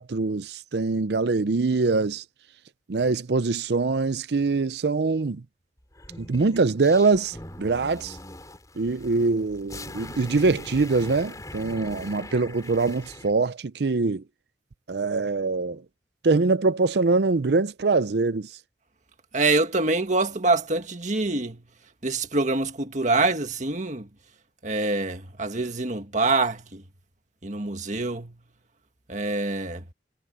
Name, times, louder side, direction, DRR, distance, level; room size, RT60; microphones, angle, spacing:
voice 1, 0.0-2.2 2.9-5.4 6.2-8.2 8.8-14.2 14.9-15.8 16.2-18.5, right 3 dB, 65° right, 0.6 m, -23 dB
sound 1, 5.9-13.3, left 1 dB, 20° left, 4.2 m, -41 dB
voice 2, 19.3-21.6 22.0-24.1 24.6-26.8 27.4-28.3 29.1-29.8, right 3 dB, 40° right, 1.8 m, -25 dB
head